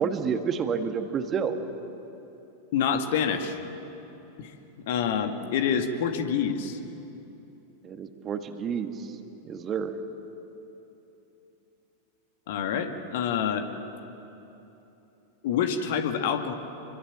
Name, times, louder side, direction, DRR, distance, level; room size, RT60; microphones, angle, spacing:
voice 1, 0.0-1.6 7.8-8.9 9.4-10.0, right 6 dB, 25° right, 7 dB, 1.7 m, -29 dB
voice 2, 2.7-3.6 4.4-4.5 4.9-6.8 12.5-13.7 15.4-16.5, left 7 dB, 55° left, 6 dB, 2.0 m, -27 dB
27.0 x 23.5 x 7.4 m, 3.0 s
figure-of-eight pair, 90°, 0 cm